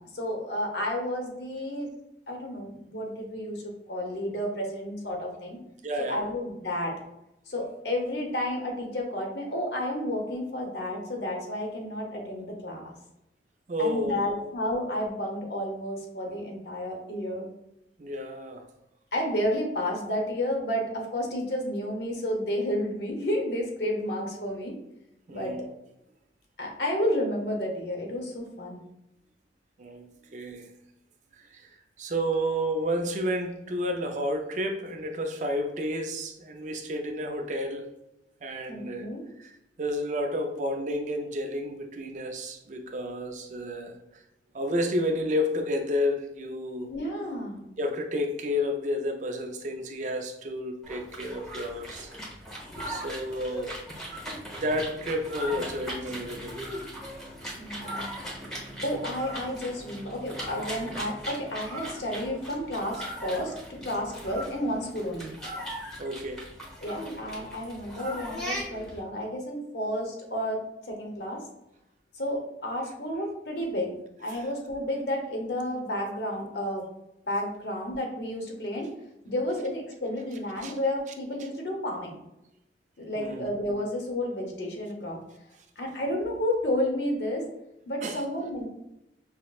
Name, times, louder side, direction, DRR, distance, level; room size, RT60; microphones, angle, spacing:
voice 1, 0.1-1.9 2.3-5.6 6.0-6.9 7.5-12.9 13.8-17.5 19.1-24.8 25.3-25.5 26.6-28.8 38.7-39.2 46.9-47.6 57.6-58.2 58.8-65.3 66.8-71.4 72.1-76.9 77.3-78.9 79.2-82.2 83.0-85.2 85.8-87.5 87.9-88.7, left 1 dB, 70° left, 0.9 m, -31 dB
voice 2, 5.8-6.2 13.7-14.5 18.0-18.7 25.3-25.7 29.8-30.7 31.4-31.7 32.0-37.9 38.4-39.1 39.4-39.5 39.8-44.2 44.5-47.0 47.8-52.2 52.9-53.8 54.6-56.6 57.8-58.3 66.0-66.5 74.3-74.4 80.6-80.7 83.2-83.5 88.0-88.2, equal, 45° right, 0.4 m, -31 dB
sound 1, 50.8-69.0, equal, 5° left, 0.9 m, -39 dB
5.6 x 2.1 x 2.3 m
head